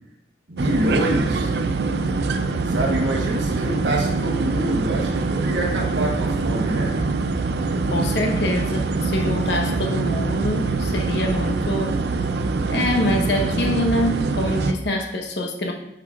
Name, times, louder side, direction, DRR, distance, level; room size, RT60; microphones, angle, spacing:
voice 1, 0.5-1.5 2.7-7.0, right 1 dB, 85° right, -1 dB, 1.2 m, -26 dB
sound 1, 0.6-14.7, right 3 dB, 65° right, 0.5 m, -24 dB
voice 2, 7.9-12.0 12.7-15.7, left 1 dB, 75° left, 2 dB, 1.0 m, -25 dB
9.5 x 6.0 x 2.5 m, 0.89 s
head